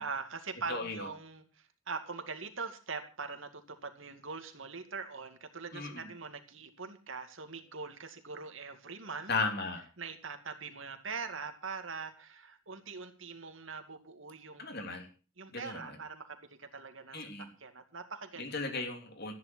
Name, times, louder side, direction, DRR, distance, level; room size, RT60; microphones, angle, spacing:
voice 1, 0.0-9.3 10.0-14.6 15.4-18.5 18.7-18.8, right 4 dB, 65° right, 7 dB, 2.3 m, -42 dB
voice 2, 0.7-1.1 5.7-6.1 9.3-9.8 14.6-15.1 15.5-16.0 17.1-17.5 18.4-19.3, left 3 dB, 50° left, 4 dB, 3.3 m, -36 dB
14.0 x 10.5 x 6.1 m, 0.36 s
head